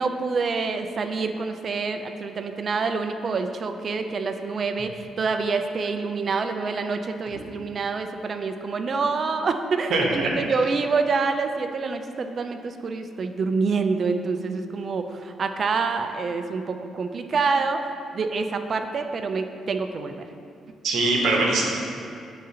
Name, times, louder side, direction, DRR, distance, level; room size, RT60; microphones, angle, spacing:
voice 1, 0.0-17.9 18.1-20.2, right 4 dB, 45° right, 7 dB, 0.4 m, -27 dB
voice 2, 9.9-10.3 20.8-21.7, right 2 dB, 70° right, -1 dB, 1.0 m, -22 dB
9.0 x 3.8 x 2.8 m, 2.5 s
cardioid pair, 90°, 0 cm